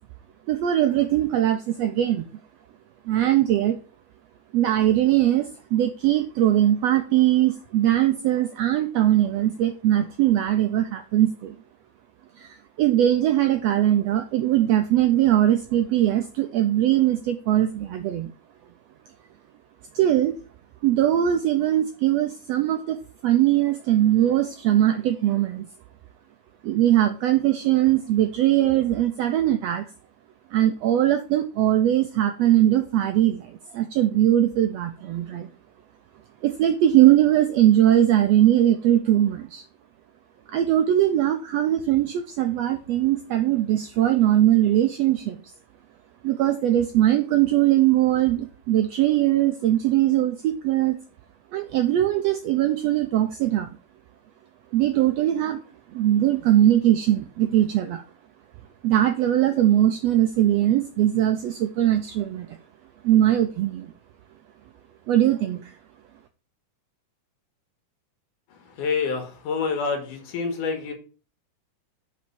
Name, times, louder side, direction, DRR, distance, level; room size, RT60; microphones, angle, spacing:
voice 1, 0.5-2.2 3.1-3.8 4.5-11.5 12.4-18.3 19.9-20.3 20.8-23.0 23.2-25.7 26.6-29.9 30.5-35.5 36.4-39.6 40.5-45.4 46.2-51.0 51.5-53.7 54.7-55.6 55.9-58.0 58.8-62.6 63.0-63.9 65.1-65.7, right 12 dB, 85° right, 7 dB, 1.5 m, -21 dB
voice 2, 68.8-70.9, left 5 dB, 80° left, 6 dB, 3.0 m, -27 dB
6.1 x 5.5 x 6.0 m, 0.37 s
omnidirectional pair, 3.6 m